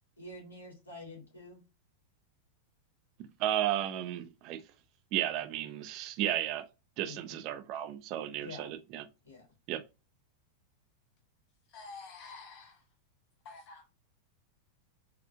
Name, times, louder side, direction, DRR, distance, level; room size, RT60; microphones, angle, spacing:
voice 1, 0.2-1.6 7.0-7.2 8.4-8.7 9.3-9.5, left 2 dB, 75° left, 1.9 m, -47 dB
voice 2, 3.4-4.6 5.1-6.7 7.0-9.1 9.7-9.8, right 12 dB, 40° right, 0.5 m, -33 dB
voice 3, 11.7-12.8 13.4-13.8, left 4 dB, 40° left, 0.6 m, -48 dB
4.4 x 2.5 x 2.4 m
figure-of-eight pair, 90°, 0 cm